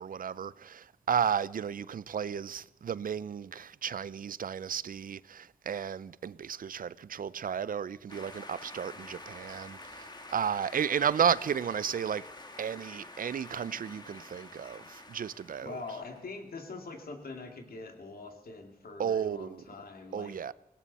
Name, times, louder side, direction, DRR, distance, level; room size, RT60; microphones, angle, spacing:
voice 1, 0.0-12.3 12.6-15.8 19.0-19.6 20.1-20.5, right 7 dB, 65° right, 0.5 m, -33 dB
sound 1, 8.1-16.4, left 2 dB, 30° left, 1.7 m, -48 dB
voice 2, 15.6-20.4, left 3 dB, 75° left, 2.5 m, -43 dB
17.5 x 17.5 x 4.2 m
wide cardioid pair, 85°, 15 cm